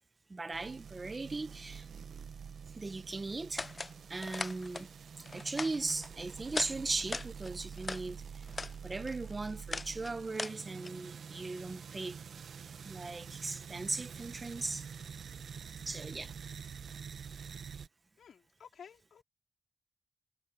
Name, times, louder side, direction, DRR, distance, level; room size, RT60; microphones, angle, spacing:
voice 1, 0.3-1.9 2.7-3.7 4.1-4.9 5.3-8.2 8.8-12.2 12.8-14.8 15.9-16.3, right 3 dB, 30° right, 1.0 m, -38 dB
sound 1, 0.5-17.9, right 6 dB, 75° right, 0.8 m, -47 dB
sound 2, 3.6-3.9 4.2-4.9 5.2-6.1 6.5-6.7 7.0-8.0 8.4-8.8 9.0-10.9, left 3 dB, 30° left, 0.5 m, -39 dB
voice 2, 18.2-19.2, left 7 dB, 85° left, 3.3 m, -54 dB
wide cardioid pair, 120°, 0 cm